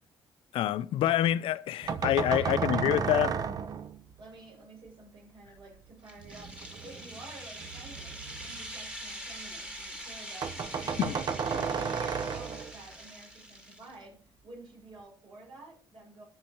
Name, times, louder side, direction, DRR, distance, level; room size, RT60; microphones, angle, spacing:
voice 1, 0.5-3.3 11.0-11.2, left 12 dB, 85° left, 0.5 m, -27 dB
sound 1, 1.8-4.2 6.2-9.5 9.8-9.9 10.1-10.2 10.4-12.9, right 6 dB, 45° right, 0.8 m, -34 dB
voice 2, 2.3-3.2 4.2-11.2 11.5-16.2, right 2 dB, 70° right, 6.0 m, -50 dB
sound 2, 6.1-13.9, equal, 10° right, 1.6 m, -44 dB
12.0 x 6.6 x 4.5 m
cardioid pair, 135°, 9 cm